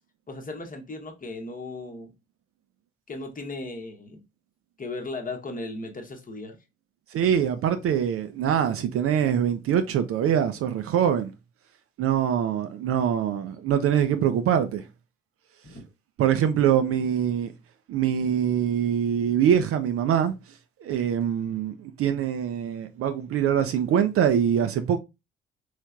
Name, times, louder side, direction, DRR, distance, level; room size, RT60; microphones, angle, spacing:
voice 1, 0.3-2.1 3.1-4.2 4.8-6.6 15.6-15.8, left 2 dB, 25° left, 0.9 m, -36 dB
voice 2, 7.1-11.3 12.0-14.8 16.2-17.5 17.9-20.3 20.8-25.0, right 9 dB, 45° right, 0.5 m, -24 dB
3.1 x 3.1 x 2.4 m
figure-of-eight pair, 45°, 32 cm